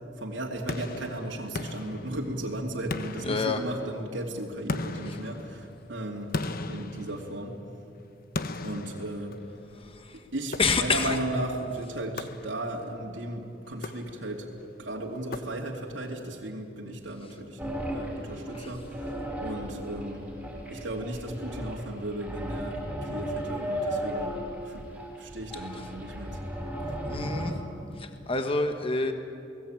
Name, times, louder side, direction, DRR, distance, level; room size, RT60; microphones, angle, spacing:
voice 1, 0.1-6.4 6.7-7.6 8.6-9.4 10.3-14.5 14.8-19.2 19.4-20.3 20.7-24.4 24.6-24.8 25.2-26.4, right 1 dB, 80° right, -1 dB, 2.7 m, -35 dB
sound 1, 0.7-2.5 2.9-4.1 4.7-7.7 8.3-9.8 10.5-11.2 12.2-12.9 13.7-14.5 15.3-16.0, left 2 dB, 50° left, 1.1 m, -37 dB
voice 2, 3.2-3.6 5.1-5.2 9.8-10.2 10.6-11.2 27.1-27.6 28.0-29.1, left 3 dB, 30° left, 6 dB, 1.4 m, -27 dB
sound 2, 17.6-27.5, equal, 5° right, 5.8 m, -35 dB
29.5 x 19.5 x 9.0 m, 2.6 s
head